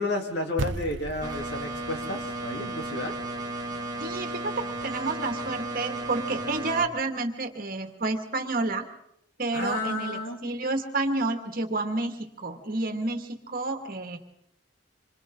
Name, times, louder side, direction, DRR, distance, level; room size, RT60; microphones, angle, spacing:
voice 1, 0.0-3.1 9.5-10.4, left 2 dB, 65° left, 2 dB, 3.4 m, -31 dB
sound 1, 0.6-5.1, right 2 dB, 90° right, 0.8 m, -39 dB
sound 2, 1.2-6.8, right 2 dB, 20° right, 2.4 m, -34 dB
voice 2, 4.0-8.8 9.4-14.2, right 2 dB, 50° right, 5 dB, 2.2 m, -30 dB
27.0 x 26.0 x 3.9 m, 0.73 s
head